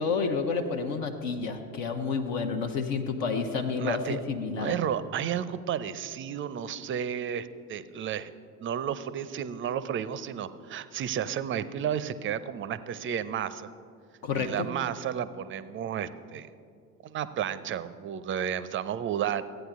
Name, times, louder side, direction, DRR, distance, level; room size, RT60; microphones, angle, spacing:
voice 1, 0.0-4.7 14.2-14.7, left 5 dB, 55° left, 4 dB, 0.9 m, -30 dB
voice 2, 3.8-4.2 4.6-8.3 8.6-13.7 14.3-16.5 17.0-19.4, right 9 dB, 30° right, 14 dB, 0.5 m, -32 dB
14.5 x 9.0 x 3.6 m, 2.3 s
figure-of-eight pair, 60°, 42 cm